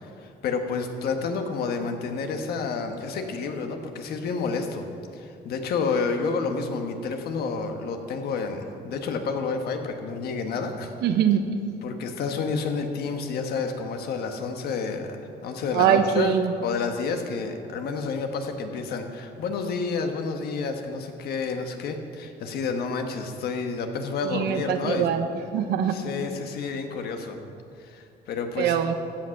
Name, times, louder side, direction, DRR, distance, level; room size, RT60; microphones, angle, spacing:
voice 1, 0.0-4.9 5.1-10.9 11.8-16.3 16.6-25.1 25.9-27.4 27.8-28.8, left 4 dB, 70° left, 5 dB, 1.4 m, -30 dB
voice 2, 11.0-11.4 15.7-16.5 24.2-25.3 25.5-26.0 28.6-28.9, right 9 dB, 75° right, 7 dB, 1.0 m, -23 dB
15.0 x 7.7 x 5.9 m, 2.6 s
cardioid pair, 110°, 17 cm